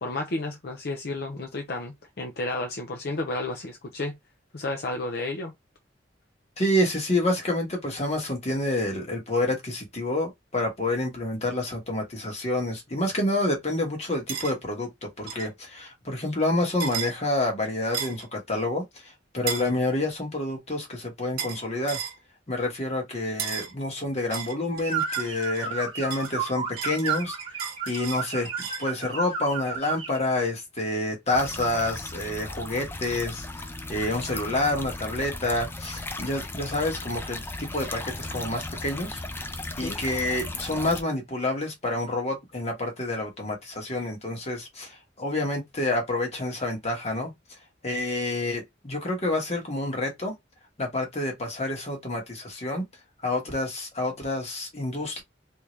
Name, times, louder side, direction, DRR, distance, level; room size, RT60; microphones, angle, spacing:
voice 1, 0.0-4.2 4.5-5.5 39.8-40.0, left 2 dB, 55° left, 0.6 m, -32 dB
voice 2, 6.6-14.9 15.2-22.0 22.5-28.5 28.8-39.2 39.8-47.3 47.8-50.3 50.8-52.8 53.2-55.2, left 1 dB, 35° left, 1.3 m, -28 dB
sound 1, 14.3-14.5 15.3-15.5 16.8-17.1 17.9-18.3 19.5-19.7 21.4-21.6 21.9-22.2 23.4-23.7 24.3-25.7 26.1-28.9, right 8 dB, 50° right, 0.8 m, -34 dB
sound 2, 24.8-30.2, right 6 dB, 25° right, 1.0 m, -32 dB
sound 3, 31.3-41.0, left 2 dB, 10° left, 0.4 m, -36 dB
3.6 x 2.8 x 3.1 m
head